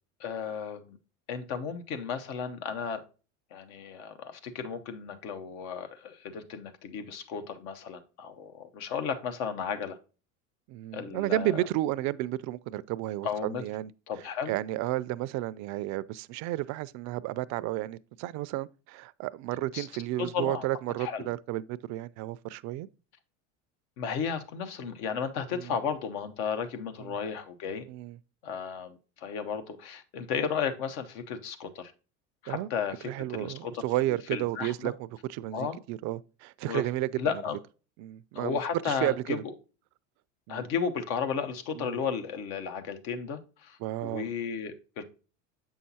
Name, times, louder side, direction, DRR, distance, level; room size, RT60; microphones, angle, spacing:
voice 1, 0.2-1.0 1.3-3.0 3.5-10.0 10.9-11.6 13.2-13.6 14.1-14.5 19.7-19.9 20.2-20.7 21.0-21.3 24.0-27.9 28.4-31.9 32.4-33.8 34.3-34.9 35.5-35.8 36.7-36.8 37.2-37.6 38.3-39.5 40.5-45.0, left 6 dB, 65° left, 1.0 m, -34 dB
voice 2, 10.7-13.9 14.5-22.9 25.5-25.7 27.0-27.2 27.9-28.2 32.5-32.7 33.0-34.9 35.3-37.2 38.0-38.6 38.8-39.4 40.5-40.7 41.7-42.0 43.8-44.3, right 16 dB, 50° right, 0.4 m, -32 dB
7.2 x 5.6 x 2.8 m
hypercardioid pair, 90°, 37 cm